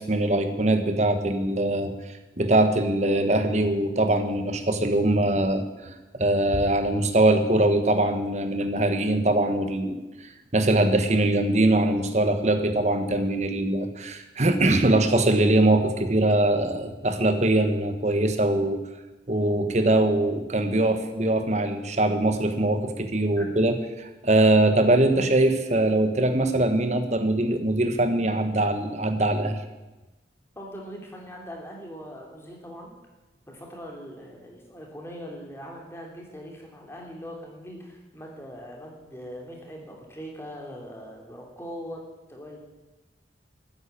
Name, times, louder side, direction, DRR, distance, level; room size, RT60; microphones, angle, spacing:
voice 1, 0.1-1.9 2.4-10.0 10.5-18.8 19.3-29.6, right 1 dB, 40° right, 8 dB, 1.3 m, -22 dB
voice 2, 30.5-32.9 33.5-42.0 42.3-42.6, equal, 15° left, 0 dB, 3.0 m, -41 dB
13.0 x 9.5 x 8.8 m, 1.1 s
head